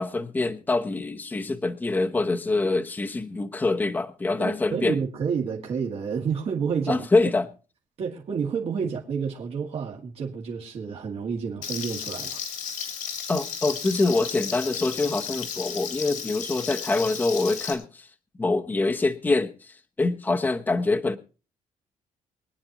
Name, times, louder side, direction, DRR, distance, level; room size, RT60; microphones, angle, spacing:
voice 1, 0.0-5.0 6.9-7.5 13.3-18.1 18.4-21.2, left 3 dB, 15° left, 0.9 m, -25 dB
voice 2, 4.4-7.1 8.0-12.4, right 6 dB, 45° right, 2.2 m, -29 dB
Frying (food), 11.6-17.7, left 7 dB, 75° left, 3.3 m, -34 dB
24.0 x 9.6 x 3.0 m
cardioid pair, 180°, 14 cm